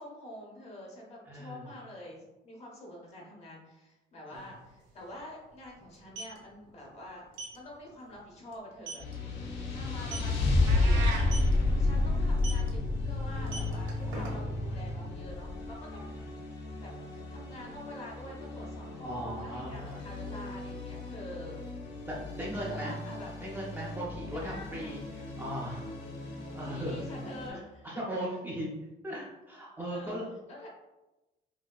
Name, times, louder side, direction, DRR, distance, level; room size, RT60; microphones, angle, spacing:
voice 1, 0.0-9.0 9.3-16.2 16.8-21.6 22.4-23.3 24.4-25.0 26.4-27.9 29.9-30.2 30.5-30.7, left 1 dB, 35° left, -2 dB, 1.0 m, -47 dB
voice 2, 1.3-1.7 4.3-4.4 9.5-9.9 15.9-16.2 19.0-20.1 22.0-23.0 23.4-25.9 26.3-27.0 27.5-27.6 27.8-28.7 29.0-30.3, equal, 10° right, -5 dB, 0.4 m, -38 dB
sound 1, 4.3-4.4 4.7-4.9 5.9-6.4 7.3-7.6 8.0-8.2 8.5-8.6 8.9-9.1 10.0-10.4 11.2-11.5 12.4-12.7 13.3-14.6, right 3 dB, 85° right, 1.4 m, -40 dB
sound 2, 9.0-27.5, left 2 dB, 85° left, 0.9 m, -32 dB
sound 3, 10.7-11.3, right 4 dB, 70° right, 0.7 m, -36 dB
5.1 x 2.8 x 2.3 m, 1.0 s
cardioid pair, 175°, 19 cm